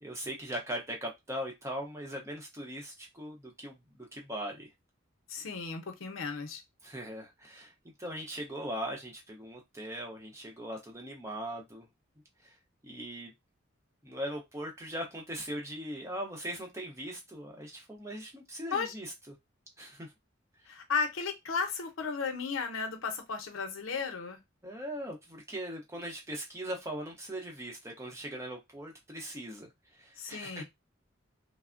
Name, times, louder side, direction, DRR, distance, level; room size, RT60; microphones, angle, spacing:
voice 1, 0.0-4.7 6.8-7.7 8.0-11.8 12.8-13.3 14.0-19.1 19.8-20.1 24.6-29.7 30.0-30.6, equal, 15° right, 0.7 m, -40 dB
voice 2, 5.3-6.6 18.7-18.9 20.7-24.4 30.2-30.6, left 5 dB, 90° left, 0.7 m, -34 dB
3.2 x 2.0 x 2.4 m
head